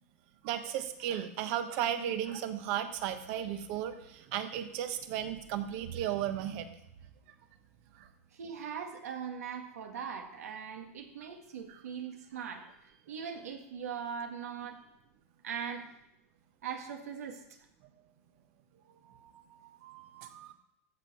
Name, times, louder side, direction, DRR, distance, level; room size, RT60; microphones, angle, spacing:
voice 1, 0.4-6.7 7.9-8.1 11.7-11.8 19.0-20.5, right 10 dB, 55° right, 8 dB, 1.3 m, -35 dB
voice 2, 8.3-14.8 15.4-15.9 16.6-17.4, right 7 dB, 80° right, 4 dB, 1.8 m, -40 dB
14.0 x 5.4 x 6.1 m, 0.81 s
hypercardioid pair, 110°, 8 cm